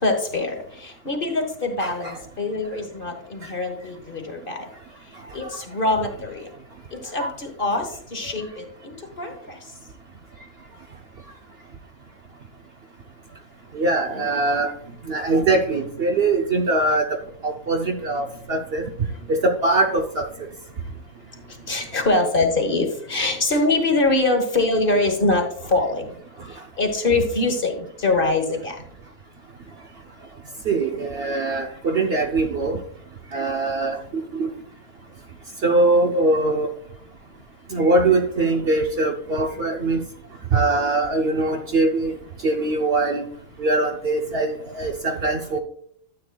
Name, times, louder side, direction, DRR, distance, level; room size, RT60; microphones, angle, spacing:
voice 1, 0.0-4.7 5.3-6.5 6.9-9.7 19.2-19.3 20.8-26.1 26.5-28.8, left 2 dB, 40° left, 4 dB, 1.2 m, -24 dB
voice 2, 1.8-2.1 7.2-7.3 13.7-14.7 15.1-17.2 17.4-18.9 19.3-20.3 21.7-21.8 30.7-32.8 33.3-34.5 35.6-36.7 37.7-40.0 40.5-42.1 42.4-43.2 43.6-45.6, right 2 dB, 50° right, 3 dB, 0.9 m, -22 dB
12.5 x 8.1 x 2.3 m, 0.64 s
omnidirectional pair, 1.5 m